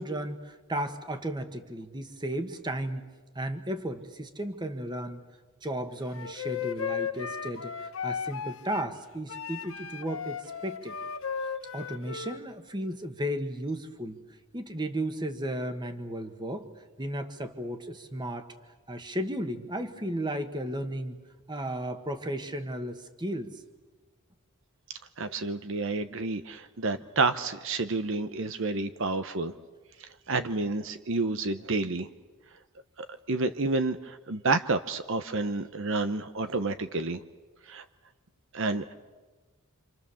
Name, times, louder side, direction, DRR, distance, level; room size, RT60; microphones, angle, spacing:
voice 1, 0.0-3.1 3.3-5.2 5.6-10.9 11.7-14.2 14.5-16.7 17.0-18.5 18.9-21.2 21.5-23.6, right 1 dB, 20° right, 7 dB, 1.6 m, -34 dB
Wind instrument woodwind instrument, 6.1-8.9 9.3-12.4, left 7 dB, 70° left, 1.1 m, -35 dB
voice 2, 25.2-29.5 30.3-32.1 33.3-37.2 37.7-37.8 38.5-38.8, right 3 dB, 60° right, 9 dB, 0.9 m, -29 dB
27.0 x 27.0 x 7.1 m, 1.3 s
head